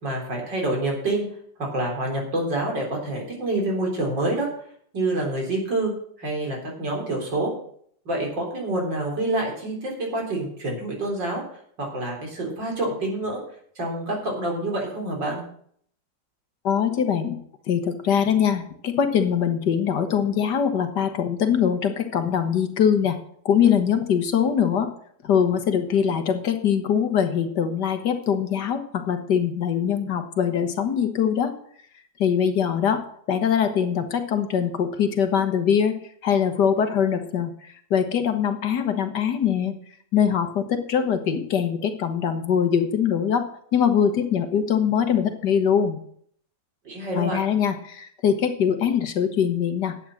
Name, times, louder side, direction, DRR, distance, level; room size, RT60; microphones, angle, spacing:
voice 1, 0.0-1.2 1.6-4.5 4.9-5.9 6.2-7.5 8.1-11.4 11.8-13.4 13.8-15.4 46.8-47.4, right 2 dB, 75° right, -1 dB, 4.4 m, -27 dB
voice 2, 16.6-17.4 17.7-23.2 23.5-24.9 25.2-31.5 32.2-35.9 36.2-37.5 37.9-39.7 40.1-43.5 43.7-46.0 47.1-50.0, left 8 dB, 70° left, 7 dB, 1.8 m, -22 dB
11.0 x 8.5 x 6.3 m, 0.62 s
omnidirectional pair, 2.0 m